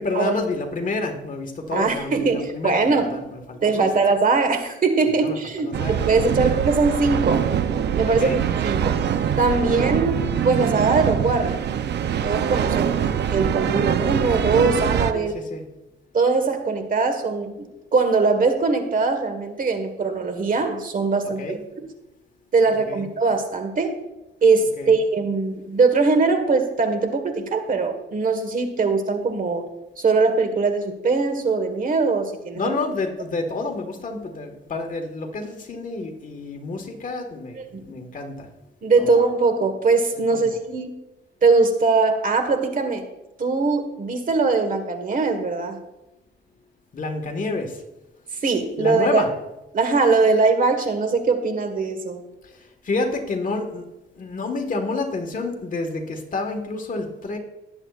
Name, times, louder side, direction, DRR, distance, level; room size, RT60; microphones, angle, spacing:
voice 1, 0.0-3.9 5.2-5.4 5.6-6.0 6.7-6.8 8.0-8.4 10.0-10.1 13.6-13.9 15.1-15.7 21.4-21.6 22.7-23.0 24.8-25.0 32.5-38.5 39.0-39.1 40.3-40.4 46.9-47.8 48.8-49.3 52.4-53.8 54.1-57.4, left 3 dB, 45° left, 5 dB, 1.6 m, -29 dB
voice 2, 1.7-3.2 3.6-7.5 7.9-8.3 8.6-9.0 9.4-11.6 12.2-13.0 13.3-15.3 16.1-17.7 17.9-21.6 22.5-24.0 24.4-29.7 30.0-32.7 37.6-37.9 38.8-40.9 41.4-43.0 43.4-45.8 48.4-49.2 49.7-52.2, right 4 dB, 45° right, 7 dB, 1.5 m, -21 dB
sound 1, 5.7-15.1, right 8 dB, 65° right, 0.7 m, -23 dB
18.5 x 7.9 x 2.5 m, 0.95 s
cardioid pair, 100°, 19 cm